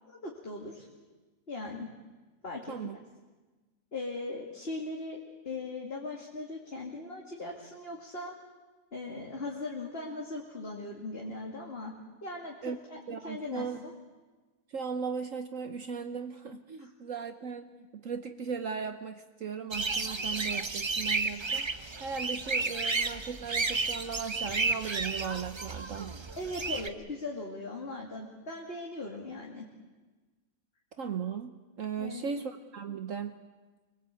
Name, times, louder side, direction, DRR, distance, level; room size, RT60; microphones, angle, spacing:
voice 1, 0.2-0.9 1.5-1.9 2.4-2.7 3.9-8.3 8.9-11.9 12.2-12.5 12.9-13.0 13.2-13.9 16.8-16.9 26.4-29.7 32.0-32.3, left 2 dB, 40° left, -1 dB, 2.6 m, -39 dB
voice 2, 13.1-13.8 14.7-26.2 31.0-33.4, right 6 dB, 60° right, 8 dB, 1.3 m, -37 dB
sound 1, 19.7-26.9, right 3 dB, 25° right, 0.6 m, -32 dB
25.0 x 21.0 x 8.3 m, 1.3 s
omnidirectional pair, 1.6 m